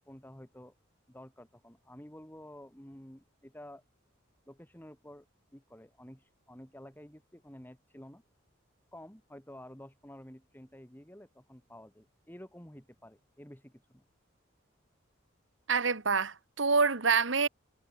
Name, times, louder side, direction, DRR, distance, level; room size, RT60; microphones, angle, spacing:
voice 1, 0.1-0.7 1.1-3.8 4.5-5.3 5.5-8.2 8.9-14.0, left 1 dB, 10° left, 2.3 m, -51 dB
voice 2, 15.7-17.5, right 5 dB, 65° right, 1.5 m, -26 dB
head